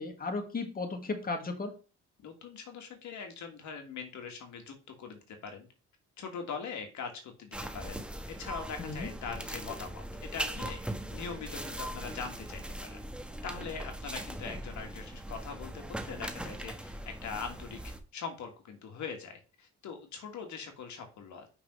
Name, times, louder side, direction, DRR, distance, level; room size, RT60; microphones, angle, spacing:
voice 1, 0.0-1.7 8.8-9.1, left 3 dB, 30° left, 5 dB, 1.7 m, -35 dB
voice 2, 2.2-5.7 6.2-10.8 11.1-13.1 13.4-21.5, left 5 dB, 70° left, 4 dB, 1.8 m, -42 dB
sound 1, 7.5-18.0, right 1 dB, 5° right, 1.0 m, -40 dB
5.9 x 4.1 x 5.5 m, 0.34 s
cardioid pair, 90°, 30 cm